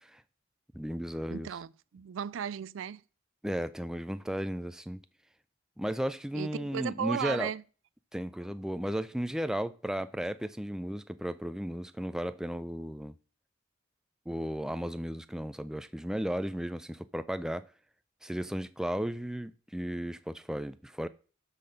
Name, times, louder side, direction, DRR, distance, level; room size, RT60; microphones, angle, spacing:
voice 1, 0.7-1.5 3.4-5.0 5.8-7.5 8.1-13.1 14.3-17.6 18.2-21.1, equal, 5° right, 0.3 m, -34 dB
voice 2, 1.3-3.0 6.3-7.6, right 8 dB, 80° right, 0.4 m, -35 dB
12.5 x 4.2 x 5.1 m
head